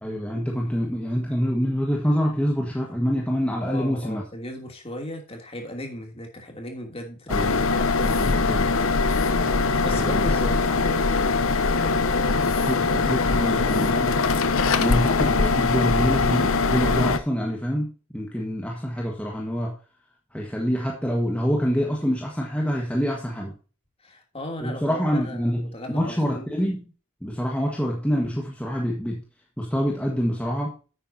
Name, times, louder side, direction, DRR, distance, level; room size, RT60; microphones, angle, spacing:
voice 1, 0.0-4.2 7.3-7.6 8.0-8.7 9.9-10.3 12.7-14.3 14.8-19.7 20.3-23.5 24.6-26.8 27.2-29.2 29.6-30.8, equal, 5° left, -1 dB, 1.5 m, -26 dB
voice 2, 3.6-9.1 9.8-14.2 24.0-26.5, left 1 dB, 25° left, 2 dB, 2.8 m, -37 dB
sound 1, 7.3-17.2, left 4 dB, 65° left, 0.8 m, -22 dB
10.5 x 8.9 x 2.8 m, 0.35 s
head